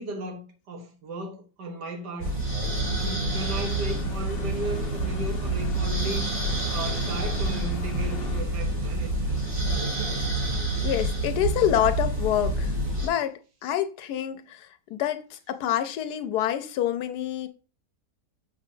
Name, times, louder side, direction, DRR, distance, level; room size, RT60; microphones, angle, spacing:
voice 1, 0.0-2.4 3.0-6.3 6.7-9.1 9.7-10.1, right 1 dB, 80° right, 1.9 m, -36 dB
sound 1, 2.2-13.1, right 2 dB, 50° right, 4.1 m, -28 dB
sound 2, 3.3-8.4, left 5 dB, 55° left, 0.7 m, -37 dB
voice 2, 10.8-12.7 13.0-17.5, left 11 dB, 75° left, 1.2 m, -27 dB
6.7 x 6.2 x 2.7 m
omnidirectional pair, 1.8 m